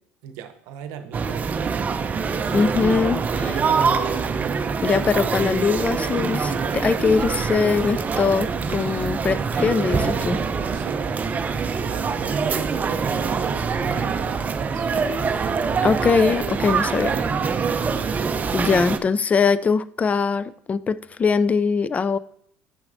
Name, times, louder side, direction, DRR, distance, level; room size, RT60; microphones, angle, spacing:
voice 1, 0.2-1.9 3.3-4.3 10.7-11.1 11.5-14.9 17.9-18.1, right 8 dB, 80° right, 8 dB, 0.7 m, -37 dB
sound 1, 1.1-19.0, right 5 dB, 30° right, 0.5 m, -24 dB
voice 2, 2.5-3.2 4.8-10.4 15.8-17.2 18.5-22.2, left 5 dB, 25° left, 17 dB, 0.3 m, -21 dB
8.4 x 5.9 x 2.6 m, 0.66 s
supercardioid pair, 90°, 5 cm